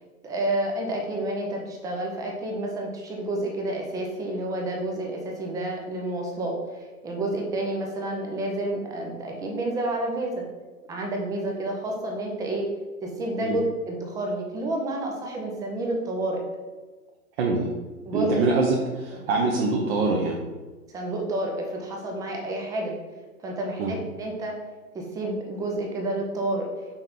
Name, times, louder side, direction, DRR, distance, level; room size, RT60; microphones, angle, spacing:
voice 1, 0.2-10.4 10.9-12.7 13.0-16.4 18.0-18.4 19.1-19.2 20.9-22.9 23.4-24.6 24.9-26.7, right 1 dB, 10° right, 0 dB, 0.5 m, -29 dB
voice 2, 17.4-17.7 18.1-20.4 23.8-23.9, right 3 dB, 40° right, -2 dB, 1.0 m, -24 dB
5.8 x 4.2 x 3.9 m, 1.3 s
hypercardioid pair, 120°, 46 cm